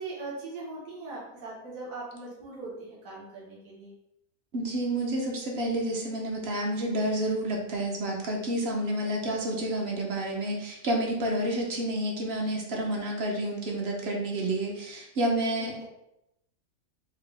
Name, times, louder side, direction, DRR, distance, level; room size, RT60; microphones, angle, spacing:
voice 1, 0.0-3.9, right 3 dB, 70° right, -7 dB, 1.8 m, -40 dB
voice 2, 4.5-15.9, right 1 dB, 55° right, 0 dB, 0.8 m, -29 dB
4.7 x 2.3 x 3.3 m, 0.82 s
omnidirectional pair, 1.5 m